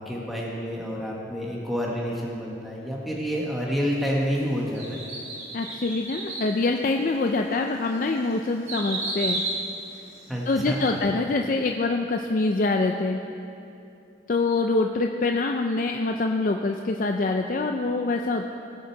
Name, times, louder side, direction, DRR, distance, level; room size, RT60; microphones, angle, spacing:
voice 1, 0.0-5.0 10.3-11.2, equal, ahead, -4 dB, 1.3 m, -29 dB
sound 1, 4.8-6.5 7.1-7.2 7.8-10.6 11.0-11.1, right 2 dB, 35° right, 1.7 m, -32 dB
voice 2, 5.5-9.4 10.5-13.2 14.3-18.5, left 3 dB, 45° left, 3 dB, 0.4 m, -25 dB
18.0 x 6.6 x 4.5 m, 2.8 s
head